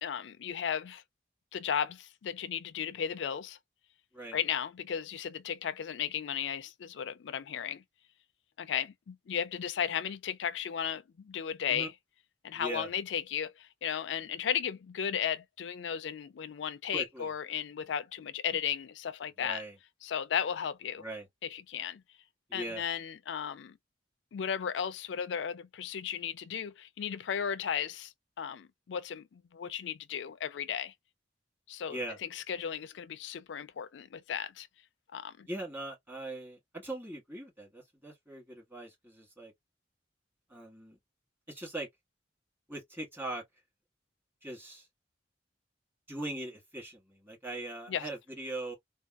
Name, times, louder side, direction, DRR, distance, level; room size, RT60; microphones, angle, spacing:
voice 1, 0.0-1.0 1.5-3.6 4.3-7.8 8.6-11.9 12.4-19.6 20.0-21.0 21.4-22.0 22.5-23.8 24.3-30.9 31.7-34.7 35.1-35.5 47.9-48.1, left 8 dB, 80° left, 0.4 m, -35 dB
voice 2, 12.5-12.9 16.9-17.3 19.4-19.7 21.0-21.3 22.5-22.8 31.9-32.2 35.5-39.5 40.5-41.0 41.5-41.9 42.7-43.4 44.4-44.9 46.1-48.7, right 1 dB, 10° right, 1.9 m, -40 dB
3.5 x 2.3 x 2.3 m
head